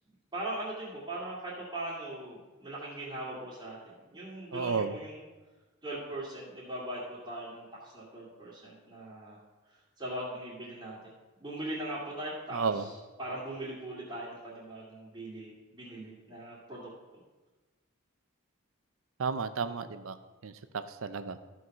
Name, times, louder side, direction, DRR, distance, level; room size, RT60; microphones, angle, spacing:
voice 1, 0.3-5.2 5.8-9.4 9.7-11.0 11.4-17.2, right 1 dB, 20° right, -10 dB, 2.1 m, -40 dB
voice 2, 4.5-4.9 12.5-12.8 19.2-20.1 20.4-21.4, right 5 dB, 80° right, 11 dB, 0.6 m, -32 dB
14.0 x 4.7 x 5.6 m, 1.2 s
head